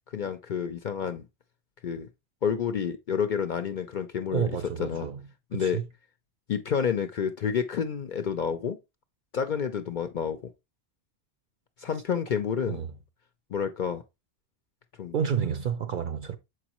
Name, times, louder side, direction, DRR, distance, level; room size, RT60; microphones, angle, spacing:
voice 1, 0.1-1.3 1.8-2.1 2.4-4.5 4.8-5.1 5.5-5.8 6.5-8.8 9.3-10.4 11.8-12.8 13.5-14.0 15.0-15.1, left 7 dB, 55° left, 0.6 m, -29 dB
voice 2, 4.3-5.3 5.5-5.8 12.7-12.9 15.1-16.4, right 8 dB, 55° right, 0.6 m, -30 dB
7.0 x 4.8 x 2.9 m
omnidirectional pair, 1.2 m